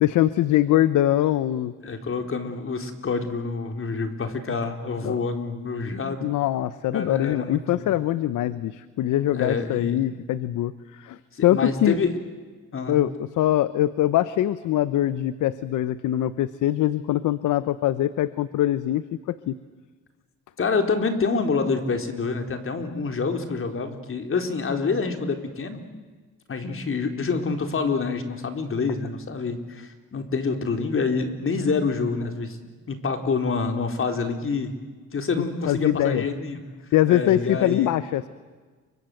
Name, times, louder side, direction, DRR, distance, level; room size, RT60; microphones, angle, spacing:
voice 1, 0.0-1.7 5.0-5.2 6.2-12.0 12.9-19.5 35.7-36.2 36.9-38.3, left 13 dB, 80° left, 15 dB, 1.0 m, -23 dB
voice 2, 1.8-6.2 6.9-7.9 9.3-10.0 11.3-12.2 12.7-13.0 20.6-25.8 26.5-32.6 32.9-34.7 35.1-36.6 37.1-37.9, left 4 dB, 45° left, 6 dB, 4.1 m, -27 dB
30.0 x 25.0 x 7.9 m, 1.4 s
cardioid pair, 90°, 30 cm